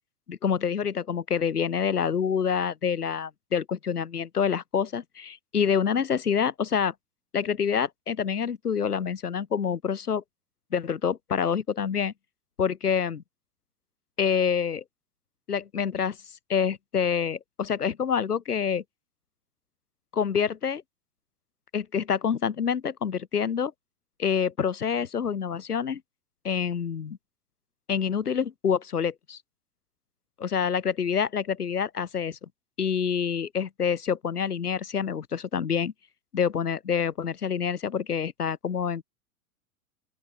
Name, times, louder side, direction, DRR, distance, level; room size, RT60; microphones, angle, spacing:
voice 1, 0.3-6.9 7.3-10.2 10.7-12.1 12.6-13.2 14.2-14.8 15.5-16.2 16.5-18.8 20.1-20.8 21.7-23.7 24.2-26.0 26.4-27.2 27.9-29.4 30.4-32.5 32.8-35.9 36.3-39.0, left 7 dB, 85° left, 1.1 m, -27 dB
open air
figure-of-eight pair, 95°, 44 cm